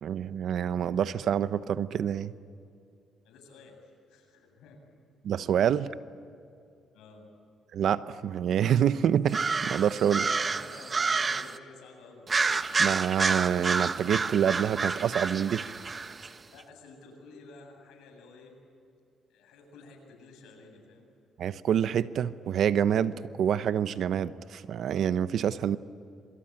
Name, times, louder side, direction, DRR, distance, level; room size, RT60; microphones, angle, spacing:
voice 1, 0.0-2.3 5.2-5.9 7.7-10.3 12.8-15.6 21.4-25.8, right 9 dB, 70° right, 14 dB, 0.9 m, -27 dB
voice 2, 3.2-4.8 6.9-7.3 10.0-12.3 16.5-18.6 19.3-21.1, left 3 dB, 90° left, 2 dB, 7.6 m, -51 dB
sound 1, 9.3-11.6 12.3-16.3, right 4 dB, 35° right, 1.1 m, -29 dB
27.0 x 24.5 x 8.9 m, 2.5 s
cardioid pair, 90°, 0 cm